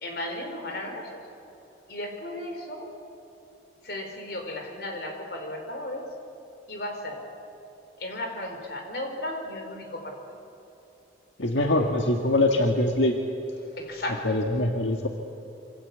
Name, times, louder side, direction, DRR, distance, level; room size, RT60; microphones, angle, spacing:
voice 1, 0.0-1.1 1.9-2.9 3.9-6.0 6.7-7.2 8.0-10.2 13.8-14.3, left 1 dB, 60° left, 4 dB, 4.3 m, -35 dB
voice 2, 11.4-13.2 14.2-15.1, left 1 dB, 85° left, 2 dB, 1.8 m, -23 dB
27.0 x 25.5 x 8.3 m, 3.0 s
head